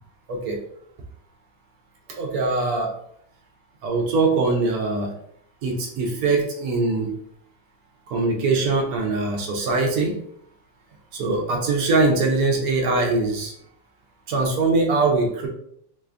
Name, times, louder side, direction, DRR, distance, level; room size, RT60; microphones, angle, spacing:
voice 1, 2.2-2.9 3.8-5.1 5.6-7.1 8.1-10.1 11.1-13.5 14.3-15.5, right 3 dB, 70° right, 1 dB, 0.9 m, -22 dB
3.3 x 3.2 x 2.4 m, 0.68 s
omnidirectional pair, 2.1 m